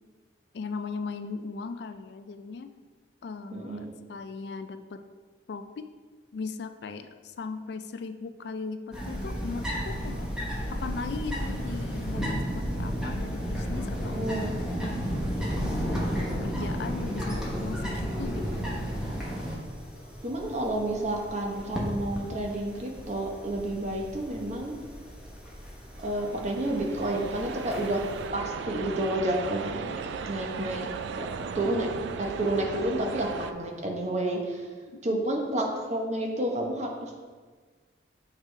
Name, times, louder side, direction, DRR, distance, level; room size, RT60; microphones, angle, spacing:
voice 1, 0.5-2.7 3.2-5.0 5.5-5.9 6.3-10.3 10.7-14.3 14.6-14.9 15.6-18.6 31.6-31.7 35.1-35.2, left 4 dB, 65° left, 9 dB, 0.3 m, -38 dB
voice 2, 3.5-3.9 14.1-14.5 20.2-24.8 26.0-28.0 28.3-29.9 30.2-30.9 31.2-31.3 31.5-31.9 32.2-34.7 35.0-37.1, right 1 dB, 40° right, 1 dB, 0.8 m, -30 dB
sound 1, 8.9-28.2, equal, 5° right, 1.1 m, -33 dB
sound 2, 25.9-33.5, right 6 dB, 75° right, 0.3 m, -37 dB
7.4 x 4.6 x 3.2 m, 1.5 s
head